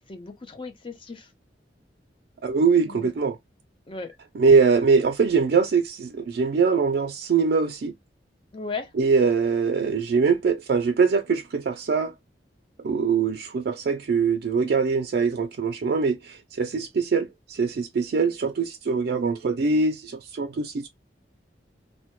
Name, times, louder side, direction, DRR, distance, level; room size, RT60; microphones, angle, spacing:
voice 1, 0.1-1.3 2.9-3.1 3.9-4.1 8.5-8.9, left 4 dB, 30° left, 0.6 m, -36 dB
voice 2, 2.4-3.4 4.3-7.9 8.9-12.1 12.8-20.9, right 5 dB, 60° right, 0.4 m, -22 dB
2.1 x 2.1 x 2.9 m
head